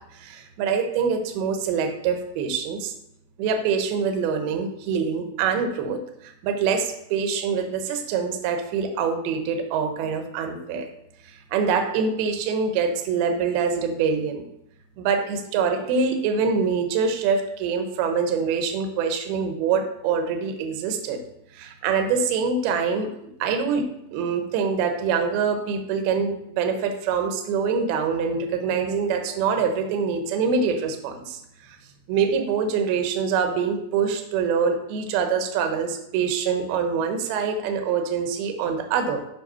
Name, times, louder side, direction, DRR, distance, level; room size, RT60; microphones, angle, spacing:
voice 1, 0.1-2.9 3.4-10.9 11.2-14.5 15.0-21.2 21.5-23.8 24.1-31.8 32.1-39.2, right 6 dB, 75° right, 5 dB, 2.6 m, -25 dB
9.7 x 3.3 x 5.5 m, 0.78 s
omnidirectional pair, 5.0 m